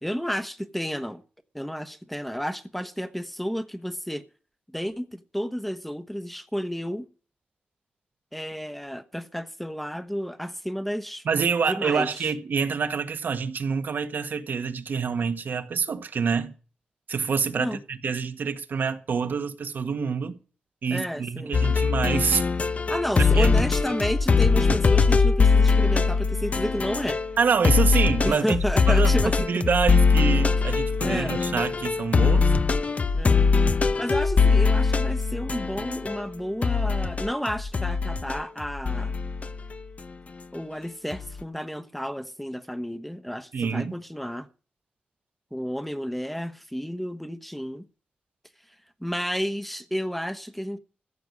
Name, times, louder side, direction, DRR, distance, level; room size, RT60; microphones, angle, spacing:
voice 1, 0.0-1.2 1.5-4.2 4.7-7.1 8.3-11.2 11.6-12.3 17.5-17.8 20.9-21.7 22.9-27.2 28.2-29.6 31.0-31.4 33.1-33.4 34.0-39.1 40.5-44.5 45.5-47.9 49.0-50.8, equal, 5° left, 1.1 m, -31 dB
voice 2, 11.2-16.5 17.1-20.4 20.8-22.4 23.2-23.5 27.4-32.5 43.5-43.9, right 6 dB, 75° right, 1.5 m, -26 dB
sound 1, 21.5-27.4 27.6-36.2 36.6-39.8 41.1-41.4, left 4 dB, 45° left, 0.9 m, -22 dB
15.0 x 6.9 x 9.5 m
wide cardioid pair, 95°, 3 cm